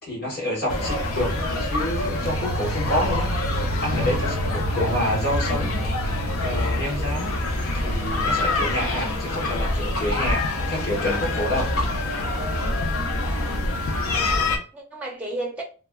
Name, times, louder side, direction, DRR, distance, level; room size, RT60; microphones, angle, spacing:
voice 1, 0.0-3.3 3.8-4.3 4.8-5.8 6.4-7.3 7.8-11.7, left 1 dB, 45° left, 1.2 m, -28 dB
sound 1, 0.7-14.6, left 2 dB, 70° left, 0.5 m, -25 dB
voice 2, 14.1-15.6, right 2 dB, 5° right, 0.5 m, -34 dB
2.8 x 2.2 x 2.3 m
head